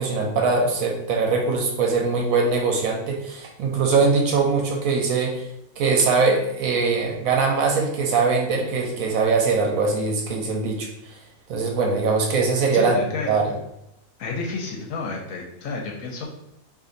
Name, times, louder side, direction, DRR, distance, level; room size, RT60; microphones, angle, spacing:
voice 1, 0.0-5.4 5.8-10.9 11.5-12.9 13.3-13.5, right 4 dB, 70° right, 0 dB, 1.0 m, -22 dB
voice 2, 12.7-13.4 14.2-16.4, left 3 dB, 70° left, 0 dB, 0.9 m, -31 dB
2.5 x 2.5 x 3.8 m, 0.82 s
omnidirectional pair, 1.6 m